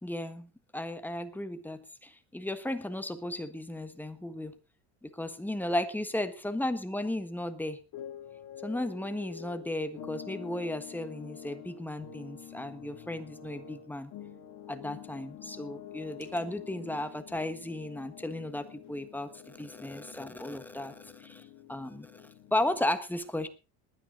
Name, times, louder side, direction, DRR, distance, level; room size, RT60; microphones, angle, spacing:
voice 1, 0.0-4.5 5.0-7.8 8.6-14.1 14.7-23.5, left 1 dB, 5° left, 9 dB, 1.4 m, -35 dB
sound 1, 5.4-5.5 7.8-22.9, left 9 dB, 50° left, 2.7 m, -47 dB
20.5 x 9.6 x 3.9 m, 0.31 s
cardioid pair, 130°, 42 cm